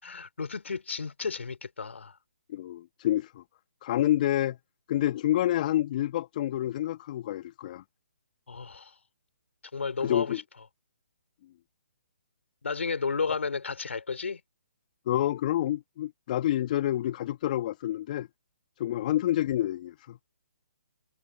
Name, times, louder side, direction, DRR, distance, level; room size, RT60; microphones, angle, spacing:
voice 1, 0.0-2.1 8.5-9.0 9.7-10.4 12.6-14.4, left 5 dB, 70° left, 3.5 m, -32 dB
voice 2, 2.5-3.4 3.8-4.6 4.9-7.8 10.0-10.4 15.1-18.3 18.8-20.2, left 13 dB, 40° left, 2.0 m, -28 dB
figure-of-eight pair, 140°, 7 cm